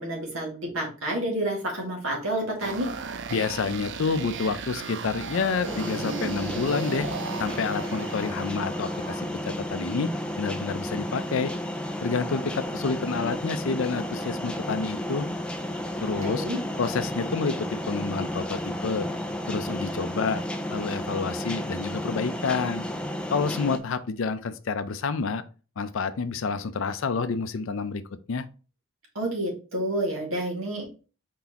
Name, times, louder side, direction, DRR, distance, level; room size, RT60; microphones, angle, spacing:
voice 1, 0.0-2.9 16.2-16.6 29.2-30.8, right 1 dB, 70° right, -1 dB, 1.9 m, -29 dB
sound 1, 2.6-9.3, right 5 dB, 55° right, 0.5 m, -36 dB
voice 2, 3.3-7.1 7.4-11.5 12.0-15.3 16.0-16.4 16.8-19.1 19.5-20.4 20.7-22.8 23.3-25.4 25.8-28.0 28.3-28.5, left 4 dB, 65° left, 12 dB, 0.5 m, -29 dB
sound 2, 5.6-23.8, left 1 dB, 5° left, 0.4 m, -32 dB
4.6 x 4.0 x 2.9 m, 0.35 s
head